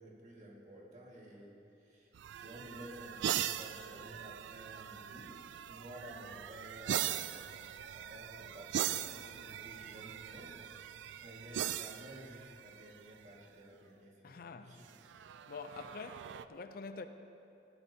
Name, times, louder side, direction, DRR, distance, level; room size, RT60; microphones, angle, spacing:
voice 1, 0.0-5.4 5.7-7.4 7.9-10.6 11.2-14.9 15.7-15.9, right 1 dB, 40° right, 1.8 m, -53 dB
sound 1, 2.1-13.3 14.9-16.5, right 10 dB, 75° right, 0.3 m, -40 dB
voice 2, 14.2-14.8 15.5-17.0, left 4 dB, 50° left, 0.4 m, -46 dB
15.5 x 12.0 x 2.8 m
head